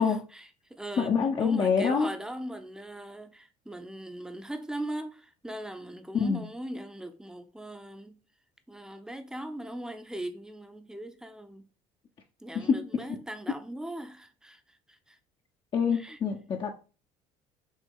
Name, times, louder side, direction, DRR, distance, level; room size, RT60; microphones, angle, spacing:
voice 1, 0.0-1.1 1.4-8.2 8.7-11.6 12.4-14.6 14.9-15.2 15.9-16.2, right 1 dB, 5° right, 0.7 m, -39 dB
voice 2, 1.0-2.1 6.1-6.4 12.5-13.0 15.7-16.7, left 6 dB, 40° left, 0.7 m, -26 dB
6.2 x 2.2 x 3.5 m
supercardioid pair, 95°, 13 cm